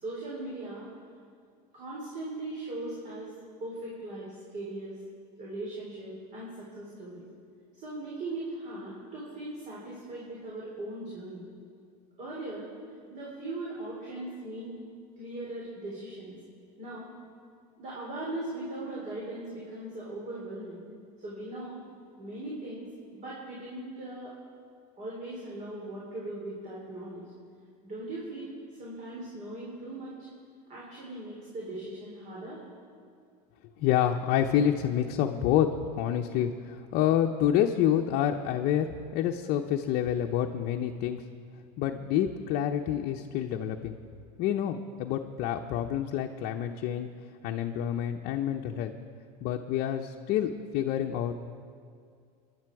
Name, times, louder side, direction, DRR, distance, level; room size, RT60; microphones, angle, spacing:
voice 1, 0.0-0.9 1.7-3.3 3.6-4.3 4.5-5.0 5.4-7.3 7.8-11.4 12.2-12.7 13.1-14.7 15.2-16.3 16.8-17.1 17.8-20.8 21.2-21.8 22.2-22.9 23.1-24.3 25.0-27.2 27.8-28.5 28.8-30.2 30.7-32.6, right 2 dB, 40° right, -5 dB, 4.1 m, -39 dB
voice 2, 33.8-35.7 36.0-38.9 39.1-41.2 41.8-44.0 44.4-47.1 47.4-48.9 49.4-51.3, left 10 dB, 55° left, 3 dB, 0.8 m, -28 dB
25.0 x 11.0 x 4.8 m, 2.2 s
supercardioid pair, 125°, 20 cm